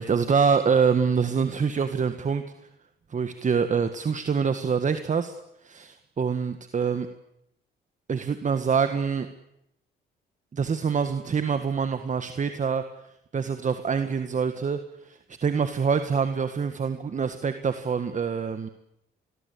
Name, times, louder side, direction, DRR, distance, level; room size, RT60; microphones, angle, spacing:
voice 1, 0.0-2.4 3.1-5.3 5.6-7.1 8.1-9.3 10.5-12.8 13.3-18.7, right 6 dB, 40° right, 9 dB, 1.7 m, -25 dB
27.0 x 21.5 x 8.6 m, 0.81 s
cardioid pair, 90°, 20 cm